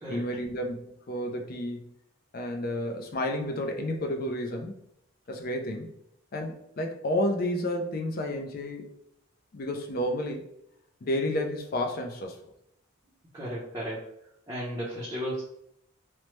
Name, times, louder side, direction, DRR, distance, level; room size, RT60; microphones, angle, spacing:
voice 1, 0.1-1.9 2.3-4.8 5.3-5.9 6.3-8.9 9.5-10.4 11.0-12.4, left 1 dB, 45° left, 3 dB, 0.4 m, -31 dB
voice 2, 13.3-14.1 14.5-15.4, equal, 15° right, -9 dB, 0.6 m, -34 dB
3.1 x 2.1 x 3.0 m, 0.75 s
head